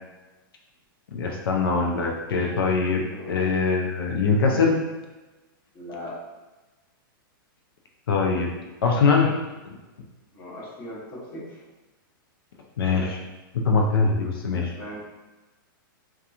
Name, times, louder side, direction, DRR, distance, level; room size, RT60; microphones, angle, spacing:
voice 1, 1.1-4.8 8.1-8.5 8.8-9.4 12.8-13.2 13.5-14.7, left 4 dB, 85° left, 1 dB, 0.5 m, -22 dB
voice 2, 3.1-3.5 5.7-6.2 10.3-11.6 14.7-15.0, equal, 20° left, -7 dB, 0.7 m, -39 dB
2.8 x 2.3 x 2.4 m, 1.1 s
supercardioid pair, 170°, 12 cm